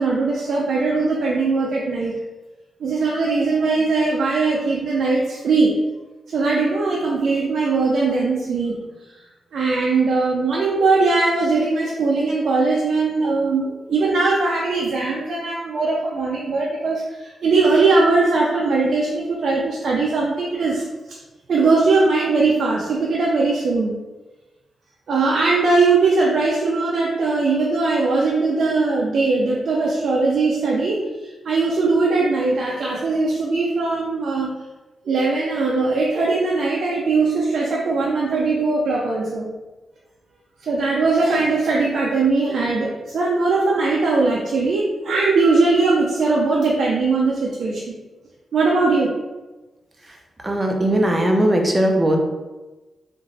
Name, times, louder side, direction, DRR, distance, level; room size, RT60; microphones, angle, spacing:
voice 1, 0.0-2.1 2.8-5.7 6.3-8.8 9.5-21.2 21.5-23.9 25.1-34.5 35.1-39.5 40.6-48.0 48.5-49.1, right 3 dB, 70° right, -3 dB, 0.4 m, -20 dB
voice 2, 50.4-52.2, right 1 dB, 20° right, 2 dB, 0.5 m, -18 dB
2.9 x 2.5 x 2.6 m, 1.1 s
cardioid pair, 70°, 0 cm